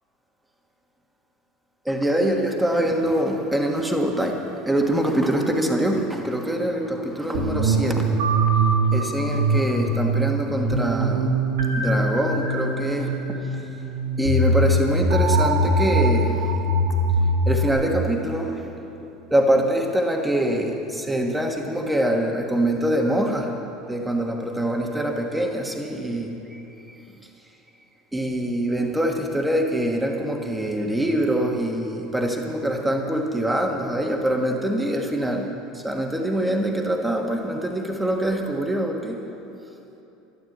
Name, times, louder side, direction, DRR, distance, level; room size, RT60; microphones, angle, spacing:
voice 1, 1.8-8.2 8.9-11.3 11.8-13.2 14.2-16.5 17.5-18.8 19.3-23.6 23.9-26.3 28.1-39.2, right 1 dB, 5° right, 1 dB, 1.5 m, -24 dB
sound 1, 7.3-17.7, right 1 dB, 90° right, 1.9 m, -22 dB
12.5 x 12.0 x 7.9 m, 2.9 s
supercardioid pair, 140°, 0 cm